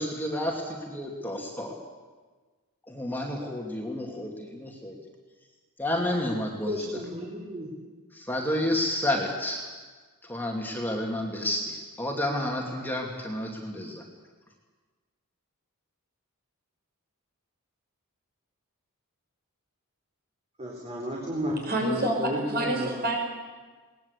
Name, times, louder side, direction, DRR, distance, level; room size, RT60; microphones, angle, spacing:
voice 1, 0.0-1.7 2.9-5.0 5.8-6.9 8.1-9.6 10.2-14.0, left 1 dB, 10° left, 0 dB, 2.6 m, -30 dB
voice 2, 6.6-7.7 20.6-22.9, equal, 30° right, -2 dB, 3.9 m, -33 dB
voice 3, 21.7-23.2, right 1 dB, 45° right, 1 dB, 5.9 m, -27 dB
21.0 x 19.5 x 8.3 m, 1.4 s
head